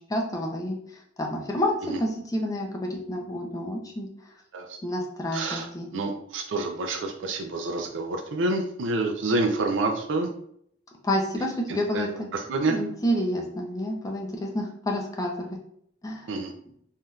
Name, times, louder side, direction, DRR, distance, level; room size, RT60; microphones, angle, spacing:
voice 1, 0.1-0.8 1.2-4.1 4.8-5.9 11.0-12.3 12.7-15.5 16.0-16.2, left 1 dB, 20° left, 1 dB, 0.5 m, -29 dB
voice 2, 5.3-5.7 5.9-10.3 11.4-12.8 16.3-16.5, right 2 dB, 90° right, 3 dB, 0.4 m, -28 dB
3.4 x 2.7 x 2.3 m, 0.67 s
head